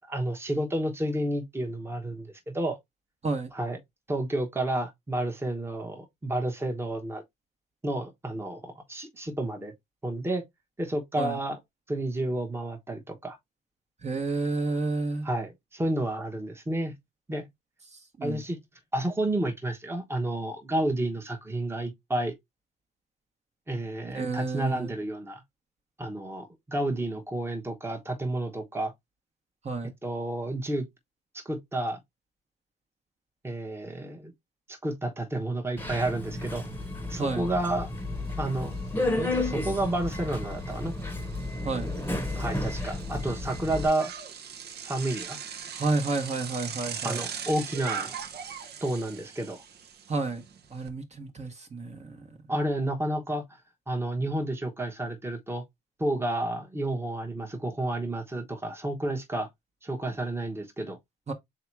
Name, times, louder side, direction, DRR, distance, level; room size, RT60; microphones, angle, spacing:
voice 1, 0.1-2.8 3.5-3.8 4.1-7.2 7.8-9.7 10.0-10.4 10.8-11.6 11.9-13.4 15.2-17.0 17.3-17.5 18.2-18.6 18.9-22.3 23.7-25.4 26.0-28.9 30.0-30.9 31.3-32.0 33.4-34.3 34.7-36.6 37.1-37.9 38.4-38.8 39.2-40.9 42.4-44.1 44.8-45.4 47.0-48.1 48.8-49.6 52.5-53.4 53.9-55.6 56.0-59.5 59.8-61.0, right 1 dB, 10° right, 1.0 m, -30 dB
voice 2, 14.0-15.3 17.9-18.4 24.1-24.9 29.6-29.9 37.2-37.5 41.6-41.9 45.7-47.2 50.1-50.4 50.7-52.3 61.3-61.4, right 3 dB, 35° right, 1.1 m, -30 dB
Subway metro underground, 35.8-43.9, left 2 dB, 10° left, 1.0 m, -32 dB
Bicycle, 36.6-36.7 37.1-50.9, right 7 dB, 55° right, 0.8 m, -41 dB
3.5 x 2.8 x 4.5 m
cardioid pair, 90°, 20 cm